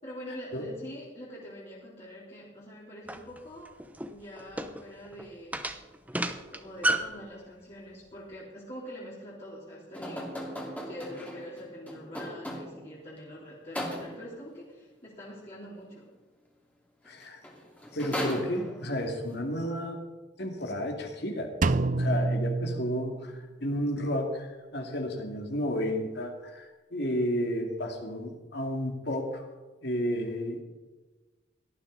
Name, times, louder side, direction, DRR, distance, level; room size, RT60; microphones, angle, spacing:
voice 1, 0.0-3.7 4.1-5.7 6.1-10.6 10.8-16.1, equal, 35° left, -8 dB, 3.9 m, -44 dB
sound 1, 3.1-7.2, right 1 dB, 10° right, 0.8 m, -32 dB
sound 2, 9.9-13.0 13.8-14.4 17.1-17.2 17.4-19.0, equal, 10° left, 2.8 m, -37 dB
voice 2, 17.1-17.4 17.9-20.0 20.4-21.5 22.0-29.5 29.8-30.6, equal, 60° left, 3 dB, 2.5 m, -32 dB
Drum, 21.6-23.5, right 3 dB, 40° right, 0.5 m, -28 dB
18.0 x 13.5 x 4.1 m, 1.2 s
head